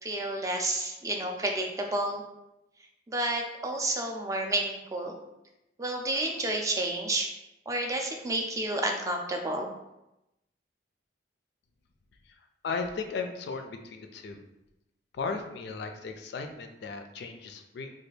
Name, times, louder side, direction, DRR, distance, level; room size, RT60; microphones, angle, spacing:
voice 1, 0.0-2.2 3.1-5.2 5.8-7.3 7.7-9.7, right 1 dB, 20° right, 2 dB, 0.3 m, -30 dB
voice 2, 12.6-14.4 15.1-17.9, left 4 dB, 60° left, 6 dB, 0.3 m, -36 dB
3.2 x 2.3 x 3.2 m, 0.90 s
head